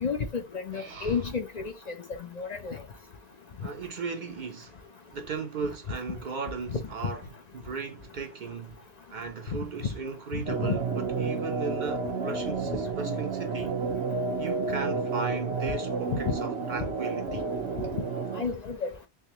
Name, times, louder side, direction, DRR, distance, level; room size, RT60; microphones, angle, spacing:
voice 1, 0.0-1.9 2.2-2.8 6.7-6.8 10.6-10.8 16.1-16.3 18.4-18.9, left 5 dB, 50° left, 0.6 m, -31 dB
voice 2, 0.7-1.2 3.6-4.7 5.1-8.8 9.1-13.8 14.4-17.5, right 4 dB, 55° right, 0.6 m, -37 dB
sound 1, 10.5-18.4, right 4 dB, 85° right, 1.0 m, -31 dB
3.5 x 3.3 x 2.8 m
omnidirectional pair, 1.1 m